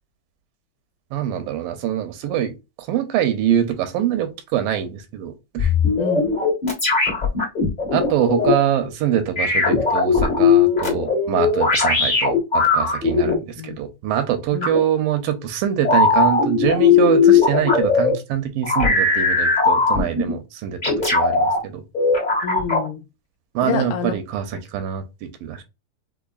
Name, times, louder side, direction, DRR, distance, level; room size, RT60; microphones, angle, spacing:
voice 1, 1.1-5.7 7.9-13.4 13.6-20.8 21.1-21.8 23.6-25.6, right 10 dB, 80° right, 2.3 m, -24 dB
sound 1, 5.6-8.5 9.3-13.3 14.6-14.8 15.8-18.1 18.6-20.3 20.8-21.6 21.9-22.9, left 4 dB, 55° left, 0.5 m, -18 dB
voice 2, 6.0-6.3 13.3-13.8 14.5-14.7 22.4-23.0 23.6-24.2 24.5-24.6, left 6 dB, 80° left, 1.9 m, -28 dB
5.5 x 2.2 x 2.4 m
omnidirectional pair, 4.1 m